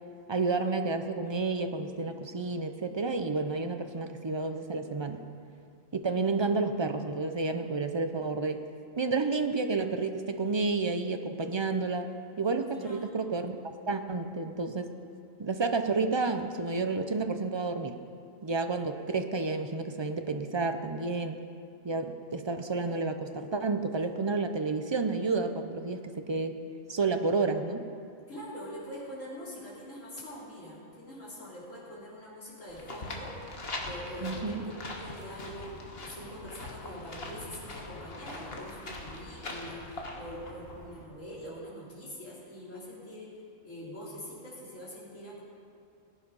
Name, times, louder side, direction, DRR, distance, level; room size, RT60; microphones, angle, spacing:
voice 1, 0.3-5.2 5.9-8.6 9.0-12.1 12.4-14.9 15.4-18.0 18.4-21.4 21.8-26.6 26.9-27.9 34.2-34.6, right 3 dB, 40° right, 7 dB, 0.4 m, -30 dB
voice 2, 12.7-13.2 28.3-33.4 33.8-45.4, equal, 80° left, -6 dB, 3.6 m, -44 dB
sound 1, 32.7-41.0, left 2 dB, 50° left, 1.6 m, -42 dB
18.0 x 9.2 x 5.5 m, 2.4 s
omnidirectional pair, 1.3 m